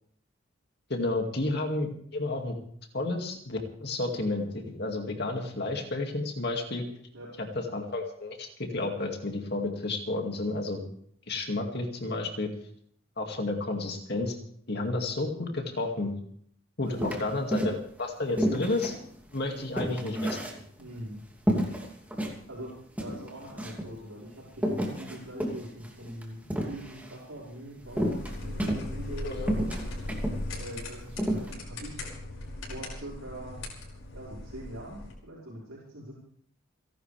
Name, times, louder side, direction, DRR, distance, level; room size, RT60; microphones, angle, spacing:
voice 1, 0.9-2.6 2.9-6.8 7.4-7.5 7.7-10.8 11.3-12.5 13.2-14.3 14.7-16.1 16.8-19.0 19.3-20.4 29.2-29.5, left 2 dB, 50° left, 2 dB, 2.3 m, -31 dB
sound 1, 17.0-18.0 18.4-21.0 21.5-22.4 22.7-22.8 23.0-23.9 24.5-27.2 28.0-29.2 29.5-30.4 30.8-30.9 31.2-31.5, equal, 5° right, 2.6 m, -30 dB
voice 2, 20.8-21.2 22.5-29.7 30.5-32.1 32.7-33.6 34.1-36.2, right 1 dB, 75° right, -6 dB, 5.2 m, -43 dB
sound 2, 27.8-35.1, left 1 dB, 75° left, 5.8 m, -38 dB
29.5 x 12.0 x 3.4 m, 0.63 s
head